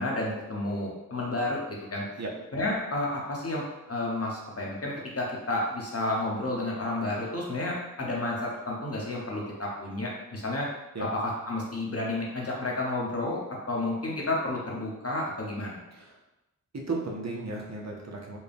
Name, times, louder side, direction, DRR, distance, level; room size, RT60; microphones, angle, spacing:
voice 1, 0.0-2.0 2.5-10.7 11.0-13.4 13.7-15.8, left 2 dB, 45° left, -3 dB, 1.0 m, -31 dB
voice 2, 16.7-18.4, right 3 dB, 50° right, -2 dB, 0.8 m, -35 dB
4.4 x 2.2 x 3.4 m, 0.98 s
wide cardioid pair, 65°, 34 cm